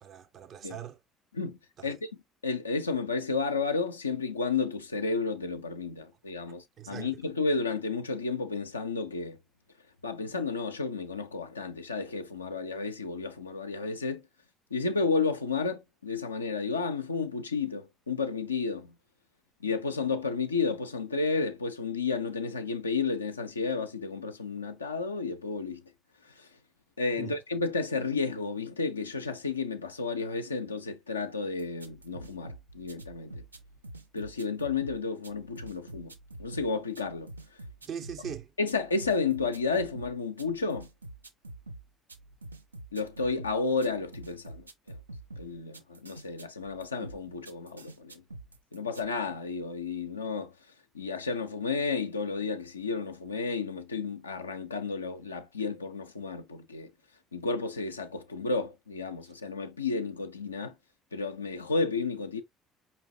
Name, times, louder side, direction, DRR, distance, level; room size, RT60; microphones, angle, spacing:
voice 1, 0.0-1.0 1.8-2.0 6.8-7.1 27.2-27.3 37.8-38.5 40.5-40.6, right 9 dB, 50° right, 0.6 m, -40 dB
voice 2, 2.4-9.4 10.0-14.2 14.7-18.9 19.6-25.8 26.2-26.5 27.0-33.4 34.1-36.1 36.4-37.3 38.6-40.9 42.9-45.0 45.4-48.2 48.7-50.5 50.9-56.9 57.3-60.7 61.1-62.4, left 4 dB, 85° left, 0.3 m, -32 dB
sound 1, 31.6-49.0, right 2 dB, 85° right, 0.4 m, -47 dB
5.0 x 2.8 x 2.5 m
figure-of-eight pair, 55°, 0 cm